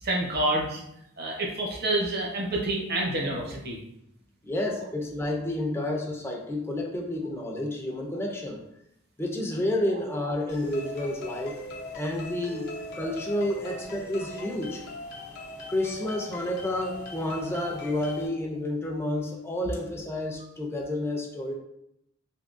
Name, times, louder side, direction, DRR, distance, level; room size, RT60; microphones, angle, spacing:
voice 1, 0.0-0.8 1.2-3.8, right 1 dB, 55° right, -1 dB, 0.9 m, -28 dB
voice 2, 4.4-8.6 9.2-11.6 11.9-14.8 15.7-21.5, left 1 dB, 10° left, 0 dB, 0.5 m, -30 dB
sound 1, 10.5-18.3, left 2 dB, 55° left, 0.7 m, -40 dB
3.6 x 2.7 x 2.5 m, 0.77 s
head